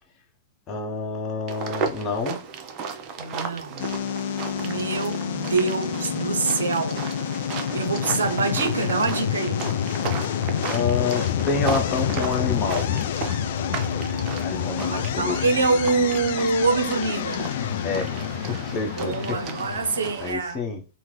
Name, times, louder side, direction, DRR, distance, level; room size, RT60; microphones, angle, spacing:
voice 1, 0.7-2.4 10.7-12.9 13.5-15.4 17.8-18.1 18.5-19.4 20.2-20.8, left 4 dB, 30° left, 0.8 m, -28 dB
sound 1, 1.5-20.3, right 5 dB, 35° right, 0.6 m, -35 dB
voice 2, 3.2-3.9 4.6-7.0 7.7-9.6 14.8-17.5 19.0-20.6, right 4 dB, 80° right, 0.5 m, -25 dB
sound 2, 3.8-20.1, left 9 dB, 60° left, 0.3 m, -28 dB
3.6 x 2.0 x 3.1 m
hypercardioid pair, 115°, 0 cm